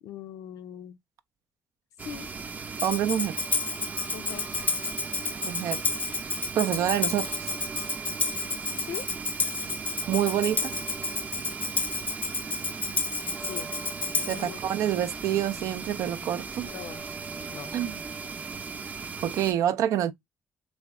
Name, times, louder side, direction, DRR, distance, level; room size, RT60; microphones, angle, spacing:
voice 1, 0.0-1.0 2.0-2.3 4.1-4.5 8.9-9.1 13.5-13.7 14.3-14.6 16.6-17.0 17.5-17.7, left 10 dB, 85° left, 0.4 m, -40 dB
sound 1, 2.0-19.5, right 5 dB, 30° right, 0.6 m, -38 dB
Tambourine, 2.8-14.5, left 4 dB, 30° left, 0.4 m, -30 dB
voice 2, 2.8-3.4 5.4-5.8 6.5-7.5 10.1-10.7 14.3-16.7 17.7-18.0 19.2-20.1, right 10 dB, 80° right, 0.4 m, -27 dB
3.4 x 2.1 x 3.4 m
cardioid pair, 80°, 6 cm